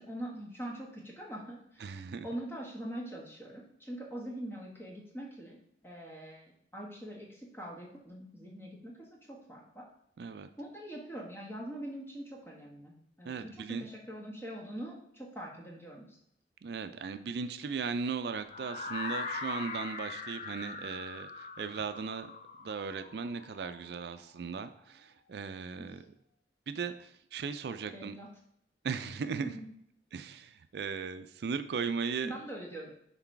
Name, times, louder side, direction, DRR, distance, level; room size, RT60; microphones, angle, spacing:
voice 1, 0.0-5.6 5.8-9.8 10.6-16.2 25.8-25.9 27.9-28.3 29.4-29.6 32.2-32.9, right 1 dB, 15° left, -3 dB, 1.3 m, -43 dB
voice 2, 1.8-2.3 10.2-10.5 13.3-13.9 16.6-22.3 22.6-26.0 26.7-28.1 28.8-29.5 30.1-32.3, right 5 dB, 70° right, 10 dB, 0.4 m, -37 dB
sound 1, 18.5-24.4, left 4 dB, 40° left, 0.6 m, -41 dB
5.9 x 3.9 x 4.5 m, 0.73 s
head